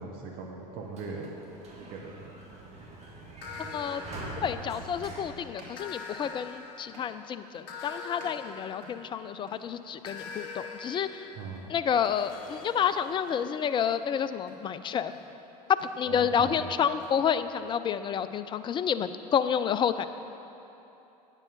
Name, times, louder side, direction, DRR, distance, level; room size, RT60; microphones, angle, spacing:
voice 1, 0.0-1.3 1.8-2.3 11.3-11.7 16.1-16.7, right 4 dB, 50° right, 0 dB, 1.3 m, -40 dB
Sliding door, 0.7-6.3, right 1 dB, 30° right, 2.0 m, -44 dB
sound 1, 2.0-2.2 3.5-3.6 4.2-4.6 5.0-5.2 5.5-5.9 6.2-6.5 6.9-7.2 7.5-7.9 8.2-9.1 9.4-9.7 10.0-10.3 10.8-11.1 11.4-11.7 12.0-12.3 12.6-13.0 13.3-14.1 14.5-14.7 15.1-15.4 15.7-16.0 16.3-17.2, equal, 80° right, 2.0 m, -54 dB
sound 2, 3.4-5.1 5.8-9.4 10.1-13.8, left 4 dB, 60° left, 1.2 m, -44 dB
voice 2, 4.4-11.3 11.7-15.1 16.0-20.1, left 8 dB, 25° left, 12 dB, 0.4 m, -29 dB
9.0 x 8.3 x 5.3 m, 3.0 s
hypercardioid pair, 85°, 21 cm